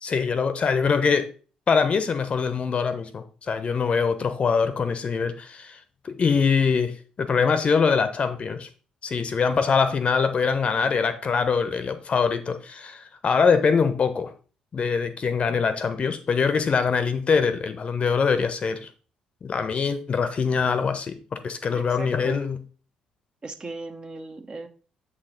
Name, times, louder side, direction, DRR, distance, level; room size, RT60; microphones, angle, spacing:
voice 1, 0.0-1.3 1.7-5.8 6.0-8.7 9.0-14.3 14.7-18.9 19.4-22.6, left 5 dB, 40° left, 0.8 m, -23 dB
voice 2, 21.7-22.5 23.4-24.7, right 3 dB, 30° right, 0.8 m, -37 dB
7.6 x 4.3 x 3.9 m
figure-of-eight pair, 45°, 3 cm